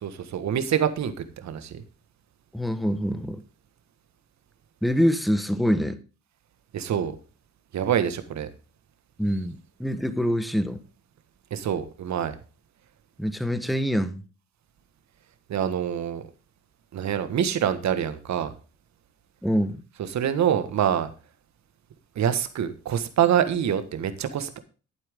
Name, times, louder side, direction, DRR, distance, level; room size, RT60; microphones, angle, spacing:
voice 1, 0.0-1.1 1.4-1.8 6.7-7.1 7.7-8.5 11.5-12.3 15.5-16.2 16.9-18.5 20.1-21.1 22.1-24.6, right 9 dB, 65° right, 10 dB, 1.6 m, -25 dB
voice 2, 2.5-3.4 4.8-6.0 9.2-10.8 13.2-14.2 19.4-19.8, equal, ahead, 11 dB, 1.2 m, -25 dB
11.5 x 8.9 x 3.7 m, 0.35 s
cardioid pair, 90°, 30 cm